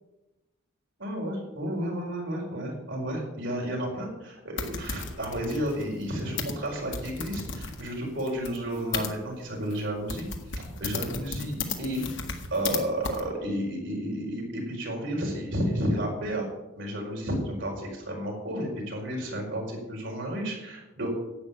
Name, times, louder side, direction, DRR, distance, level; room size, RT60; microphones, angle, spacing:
voice 1, 1.0-10.3 10.5-11.5 11.8-12.0 12.5-16.5 16.7-21.1, equal, 65° right, -2 dB, 4.8 m, -32 dB
sound 1, 4.6-9.1 9.7-9.8 10.1-12.8 13.0-13.2, left 4 dB, 65° left, 1.7 m, -35 dB
11.5 x 8.2 x 8.4 m, 1.0 s
head